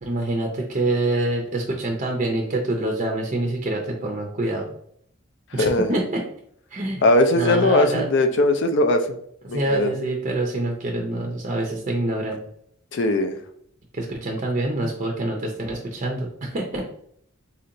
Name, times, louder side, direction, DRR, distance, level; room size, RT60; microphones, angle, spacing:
voice 1, 0.0-4.7 5.5-6.2 6.7-7.0 7.3-8.1 9.4-12.4 13.9-16.8, right 2 dB, 35° right, 0 dB, 0.5 m, -26 dB
voice 2, 5.6-5.9 7.0-9.2 9.5-9.9 12.9-13.4, left 2 dB, 60° left, 7 dB, 0.4 m, -19 dB
4.3 x 2.8 x 2.6 m, 0.67 s
head